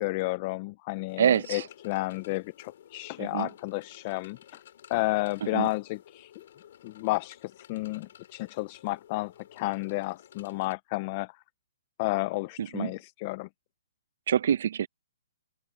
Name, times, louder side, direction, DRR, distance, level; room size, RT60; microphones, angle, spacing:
voice 1, 0.0-4.6 4.9-6.4 6.8-11.4 12.0-13.5, left 21 dB, 25° left, 0.4 m, -32 dB
sound 1, 1.1-10.7, left 10 dB, 45° left, 6.6 m, -54 dB
voice 2, 1.2-1.6 3.3-3.5 5.5-5.7 12.6-12.9 14.3-14.9, right 9 dB, 50° right, 0.8 m, -25 dB
open air
hypercardioid pair, 170°, 0 cm